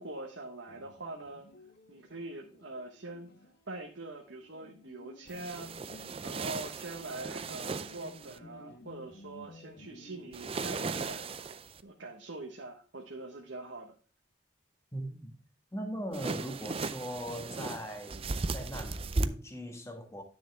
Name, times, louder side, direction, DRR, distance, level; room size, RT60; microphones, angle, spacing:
voice 1, 0.0-1.5 1.9-3.3 3.7-5.7 6.2-11.5 11.8-13.9, right 2 dB, 65° right, 1.2 m, -43 dB
sound 1, 0.7-11.1, left 2 dB, 50° left, 1.1 m, -55 dB
sound 2, 5.3-8.4 10.3-11.8 16.1-19.3, right 3 dB, 30° right, 0.4 m, -36 dB
voice 2, 14.9-15.3 15.7-20.2, equal, 15° left, 1.5 m, -40 dB
10.0 x 6.4 x 3.4 m
head